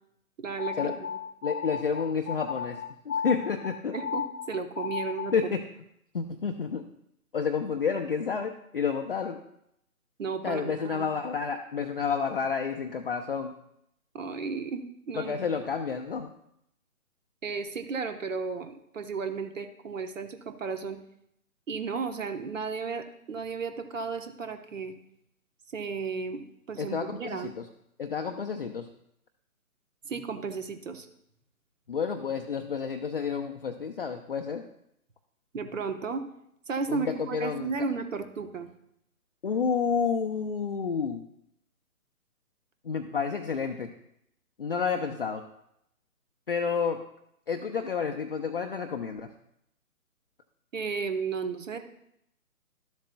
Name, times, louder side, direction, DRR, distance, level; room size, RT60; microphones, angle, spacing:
voice 1, 0.4-1.1 3.9-5.3 10.2-11.1 14.1-15.3 17.4-21.0 21.7-25.0 25.7-27.5 30.0-31.1 35.5-36.3 36.7-38.7 50.7-51.8, right 5 dB, 60° right, 7 dB, 1.1 m, -34 dB
sound 1, 0.6-5.5, left 7 dB, 85° left, 0.6 m, -35 dB
voice 2, 1.4-4.0 5.3-5.6 6.1-6.8 7.3-9.4 10.4-13.5 15.2-16.3 26.8-27.7 28.0-28.9 31.9-34.7 36.9-37.7 39.4-41.2 42.8-43.9 44.6-45.5 46.5-47.1 47.5-49.3, left 6 dB, 40° left, 3 dB, 0.5 m, -30 dB
12.5 x 7.3 x 2.3 m, 0.76 s
figure-of-eight pair, 145°, 44 cm